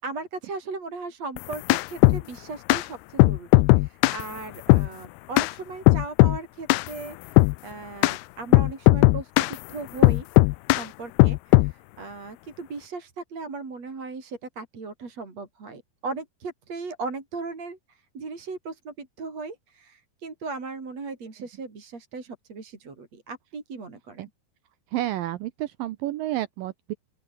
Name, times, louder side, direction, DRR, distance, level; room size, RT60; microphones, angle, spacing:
voice 1, 0.0-10.3 10.7-24.3, right 3 dB, 40° right, 5.6 m, -37 dB
sound 1, 1.4-2.2 2.7-2.8 3.2-4.2 4.7-4.9 5.4-5.5 5.9-6.4 6.7-6.9 7.4-7.6 8.0-8.2 8.5-9.5 10.0-10.8 11.2-11.7, left 23 dB, 80° left, 2.3 m, -17 dB
voice 2, 24.9-26.9, right 14 dB, 75° right, 2.2 m, -30 dB
open air
omnidirectional pair, 4.8 m